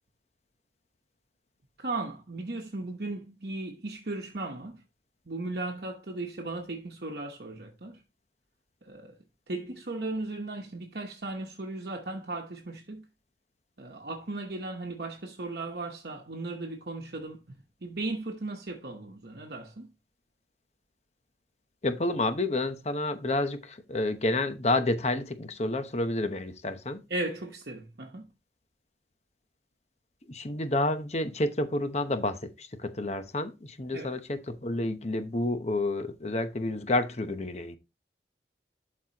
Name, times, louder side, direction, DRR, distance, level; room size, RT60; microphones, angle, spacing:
voice 1, 1.8-4.8 5.3-8.0 8.8-9.2 9.5-13.1 13.8-19.9 27.1-28.2 33.9-34.2, right 2 dB, 60° right, 1.0 m, -36 dB
voice 2, 21.8-27.0 30.3-37.8, left 2 dB, 40° left, 0.9 m, -29 dB
12.0 x 4.3 x 2.9 m
head